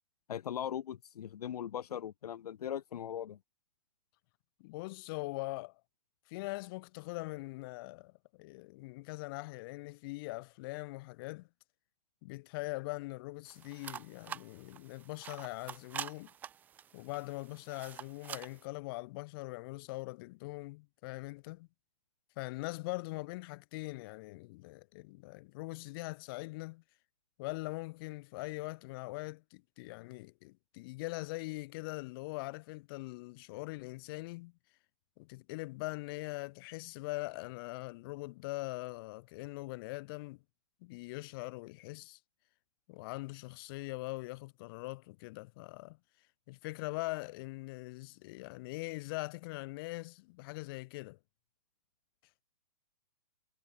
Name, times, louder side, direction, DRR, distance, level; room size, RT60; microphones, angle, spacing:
voice 1, 0.3-3.4, left 10 dB, 75° left, 0.7 m, -39 dB
voice 2, 4.6-5.8 6.3-11.5 12.2-16.3 16.9-21.7 22.4-26.8 27.4-34.5 35.2-40.4 40.8-42.2 42.9-46.0 46.5-51.2, left 22 dB, 35° left, 3.1 m, -42 dB
sound 1, 13.5-18.6, right 9 dB, 10° right, 0.4 m, -46 dB
hypercardioid pair, 155°, 20 cm